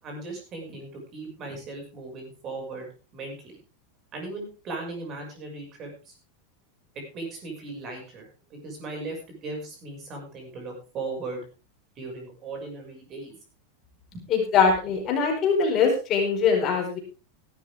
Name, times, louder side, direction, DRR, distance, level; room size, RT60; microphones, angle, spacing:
voice 1, 0.0-2.9 3.1-3.3 4.1-6.1 6.9-11.4 12.0-13.4 14.1-14.2, right 3 dB, 30° right, 2 dB, 6.1 m, -37 dB
voice 2, 14.3-17.0, left 5 dB, 30° left, 1 dB, 4.7 m, -22 dB
16.0 x 12.0 x 3.6 m, 0.32 s
supercardioid pair, 160°, 0 cm